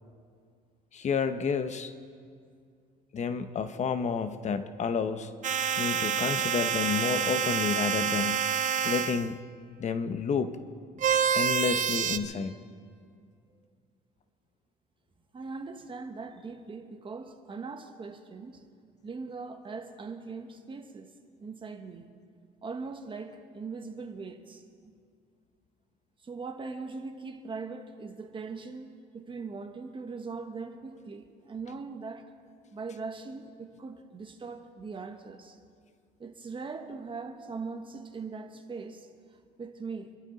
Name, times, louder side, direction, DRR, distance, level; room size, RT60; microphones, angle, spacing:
voice 1, 0.9-1.9 3.1-5.3 5.8-8.5 8.8-9.4 9.8-10.6 11.3-12.5, left 6 dB, 45° left, 10 dB, 0.9 m, -30 dB
sound 1, 5.4-9.3 11.0-12.2, right 8 dB, 50° right, 0.7 m, -27 dB
voice 2, 15.3-18.6 19.0-21.1 21.4-22.1 22.6-24.9 26.2-28.9 29.1-32.3 32.6-35.6 36.2-39.1 39.6-40.1, right 4 dB, 30° right, 6 dB, 1.4 m, -40 dB
27.5 x 12.0 x 4.0 m, 2.2 s
cardioid pair, 110°, 17 cm